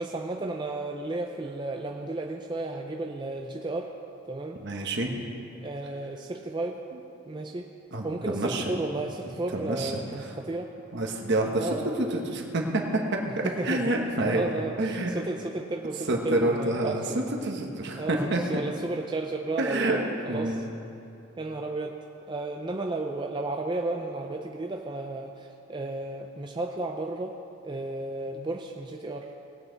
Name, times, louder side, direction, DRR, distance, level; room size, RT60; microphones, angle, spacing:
voice 1, 0.0-3.9 4.3-4.6 5.6-6.8 7.3-7.7 8.0-10.7 11.6-11.9 13.3-13.9 14.3-17.3 18.0-20.7 21.4-22.0 22.3-27.4 27.6-29.3, right 2 dB, 20° right, 2 dB, 0.4 m, -33 dB
voice 2, 4.6-5.1 7.9-8.6 9.5-9.9 10.9-11.7 12.1-13.0 13.6-14.4 14.8-15.1 16.1-17.0 17.4-18.4 19.6-20.0 20.3-20.6, right 2 dB, 50° right, 1 dB, 1.2 m, -27 dB
18.5 x 8.4 x 4.0 m, 2.8 s
head